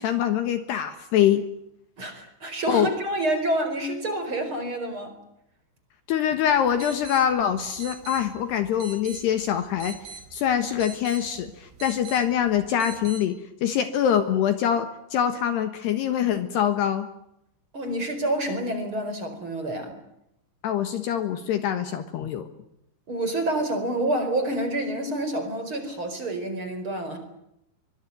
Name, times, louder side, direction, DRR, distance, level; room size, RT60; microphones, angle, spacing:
voice 1, 0.0-1.4 2.7-2.9 6.1-10.0 10.3-17.1 20.6-22.5, left 9 dB, 65° left, 9 dB, 3.2 m, -24 dB
voice 2, 2.0-5.2 17.7-20.0 23.1-27.2, right 1 dB, 25° right, 7 dB, 4.9 m, -28 dB
sound 1, 6.5-13.2, right 5 dB, 75° right, 5.9 m, -44 dB
24.0 x 23.5 x 9.3 m, 0.80 s
omnidirectional pair, 5.7 m